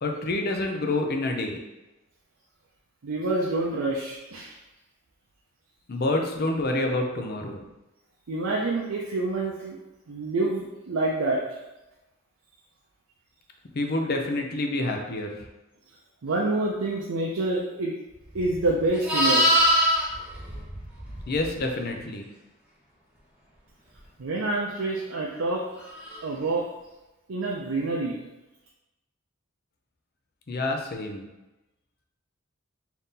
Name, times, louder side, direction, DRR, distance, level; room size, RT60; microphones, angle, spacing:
voice 1, 0.0-1.6 5.9-7.6 13.7-15.3 21.3-22.2 30.5-31.3, left 2 dB, 50° left, 2 dB, 0.6 m, -27 dB
voice 2, 3.0-4.5 8.3-9.8 10.1-11.4 16.2-17.9 18.3-19.5 24.2-25.6 26.2-26.7 27.3-28.2, right 2 dB, 75° right, -2 dB, 0.5 m, -27 dB
Livestock farm animals working animals, 18.3-21.6 26.0-26.2, equal, 5° right, 0.8 m, -24 dB
4.0 x 2.8 x 3.6 m, 1.0 s
head